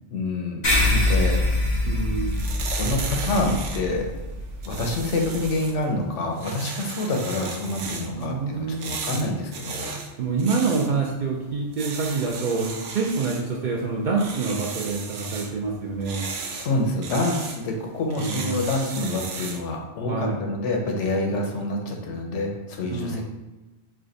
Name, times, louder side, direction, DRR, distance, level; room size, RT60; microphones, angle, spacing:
voice 1, 0.1-1.4 2.7-4.3 4.6-9.9 16.6-23.2, left 2 dB, 85° left, 1 dB, 1.0 m, -27 dB
sound 1, 0.6-5.5, left 1 dB, 40° left, 1.0 m, -25 dB
voice 2, 1.9-2.4 8.1-8.8 10.2-16.3 18.2-18.6 20.1-20.4 22.9-23.2, right 4 dB, 60° right, -2 dB, 0.5 m, -26 dB
sound 2, 2.1-19.7, right 5 dB, 80° right, 0.9 m, -37 dB
3.2 x 2.4 x 3.8 m, 1.1 s
omnidirectional pair, 1.2 m